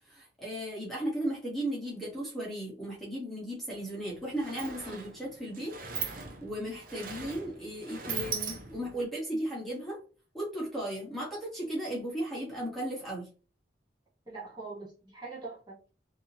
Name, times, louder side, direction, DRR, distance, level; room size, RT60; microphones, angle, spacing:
voice 1, 0.1-5.8 6.4-10.0 10.3-13.3, right 1 dB, ahead, -5 dB, 1.2 m, -36 dB
Sliding door, 3.7-3.8 4.1-9.0, right 6 dB, 50° right, 0.6 m, -39 dB
voice 2, 14.3-15.9, right 3 dB, 25° right, -6 dB, 1.2 m, -43 dB
3.5 x 2.7 x 2.8 m, 0.36 s
head